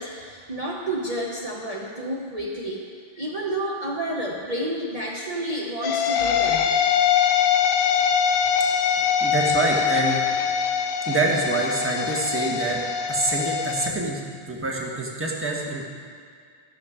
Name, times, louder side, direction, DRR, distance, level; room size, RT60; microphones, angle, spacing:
voice 1, 0.0-2.8 3.1-6.6, right 1 dB, 40° right, -4 dB, 1.0 m, -30 dB
sound 1, 5.8-13.9, left 8 dB, 65° left, 0.7 m, -23 dB
voice 2, 9.2-10.2 11.1-12.8 13.1-15.8, right 3 dB, 15° right, -1 dB, 1.2 m, -26 dB
13.0 x 6.8 x 4.9 m, 2.2 s
omnidirectional pair, 1.1 m